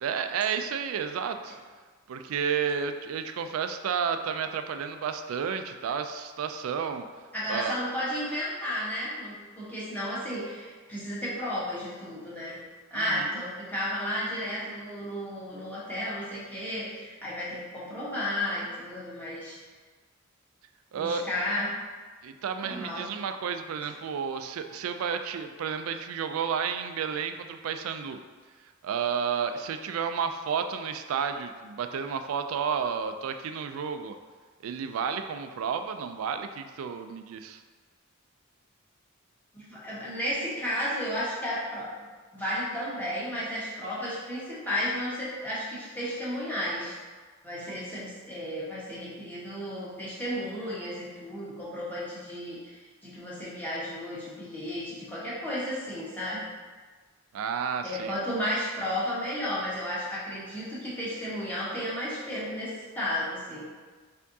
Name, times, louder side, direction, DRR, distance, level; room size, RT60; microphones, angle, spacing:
voice 1, 0.0-1.6 2.1-7.0 7.5-7.8 12.9-13.3 20.9-21.2 22.2-28.2 28.8-34.1 34.6-37.6 57.3-58.1, right 6 dB, 70° right, 8 dB, 0.3 m, -31 dB
voice 2, 7.3-12.6 12.9-19.5 20.9-21.7 22.6-23.0 39.5-42.0 42.3-47.0 47.4-56.4 57.8-63.7, equal, 10° left, -9 dB, 1.2 m, -33 dB
4.5 x 3.5 x 2.7 m, 1.4 s
head